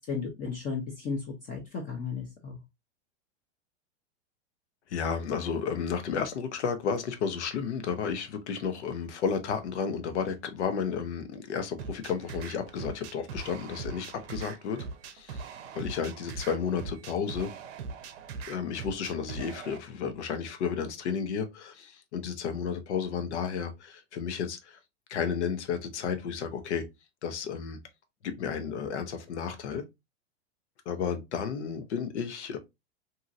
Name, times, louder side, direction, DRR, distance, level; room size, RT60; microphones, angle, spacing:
voice 1, 0.1-2.6, left 5 dB, 25° left, 0.6 m, -34 dB
voice 2, 4.9-14.8 15.1-15.5 15.7-17.5 18.5-24.8 25.1-26.9 27.2-27.8 28.2-29.8 30.9-32.6, left 6 dB, 85° left, 0.7 m, -32 dB
sound 1, 11.8-19.8, right 4 dB, 70° right, 0.6 m, -41 dB
2.8 x 2.7 x 2.4 m
hypercardioid pair, 130°, 34 cm